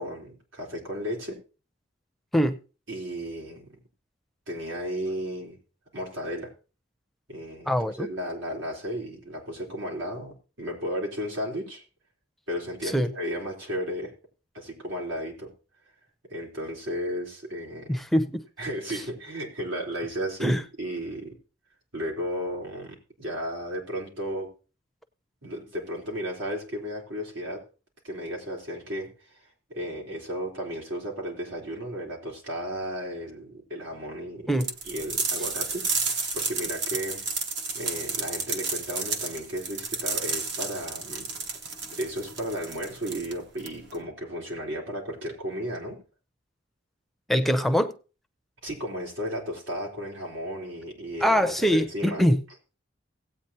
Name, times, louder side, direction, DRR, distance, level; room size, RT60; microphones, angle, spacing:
voice 1, 0.0-1.4 2.9-3.8 4.5-5.6 5.9-6.5 7.3-11.8 12.5-14.1 14.5-15.5 16.3-17.9 18.6-21.3 21.9-24.5 25.4-27.6 28.0-34.6 34.8-37.2 37.7-41.3 42.0-46.0 48.6-52.2, equal, 85° right, 3.9 m, -34 dB
voice 2, 7.7-8.1 12.8-13.1 17.9-18.4 20.4-20.6 34.5-34.7 47.3-47.9 51.2-52.4, equal, ahead, 0.5 m, -23 dB
sound 1, 34.6-44.0, right 4 dB, 65° right, 1.1 m, -31 dB
17.5 x 8.5 x 2.9 m
head